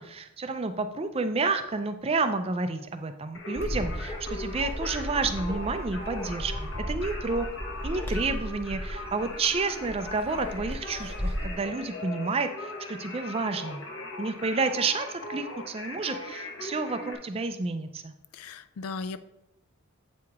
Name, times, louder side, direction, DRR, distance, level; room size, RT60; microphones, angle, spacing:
voice 1, 0.0-7.5 7.8-13.8 14.2-18.1, right 3 dB, 25° right, 9 dB, 0.4 m, -30 dB
Singing, 3.3-17.1, left 2 dB, 55° left, 1.1 m, -40 dB
Bark, 3.6-11.5, equal, 10° left, 0.8 m, -35 dB
voice 2, 18.3-19.2, left 4 dB, 75° left, 13 dB, 0.4 m, -36 dB
8.1 x 4.8 x 3.5 m, 0.89 s
head